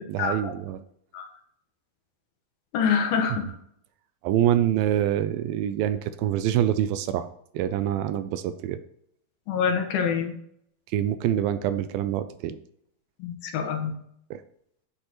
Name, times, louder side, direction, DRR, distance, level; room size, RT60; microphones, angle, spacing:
voice 1, 0.1-0.8 4.2-7.3 7.5-8.8 10.9-12.6 14.3-14.4, right 11 dB, 80° right, 12 dB, 2.3 m, -25 dB
voice 2, 2.7-3.5 9.5-10.3 13.2-13.9, left 7 dB, 75° left, 3 dB, 3.0 m, -25 dB
9.9 x 8.7 x 3.0 m, 0.70 s
omnidirectional pair, 4.4 m